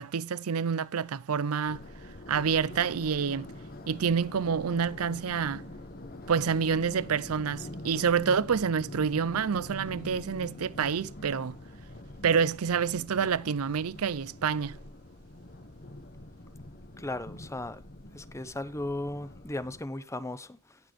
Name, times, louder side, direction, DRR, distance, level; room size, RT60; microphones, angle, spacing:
voice 1, 0.0-1.8 2.3-3.5 3.9-5.7 6.3-11.6 12.2-14.8, right 6 dB, 90° right, 0.5 m, -28 dB
sound 1, 1.7-19.8, left 1 dB, 45° left, 1.2 m, -45 dB
voice 2, 17.0-17.8 18.1-20.8, left 2 dB, 15° left, 0.8 m, -36 dB
18.0 x 6.0 x 3.1 m
head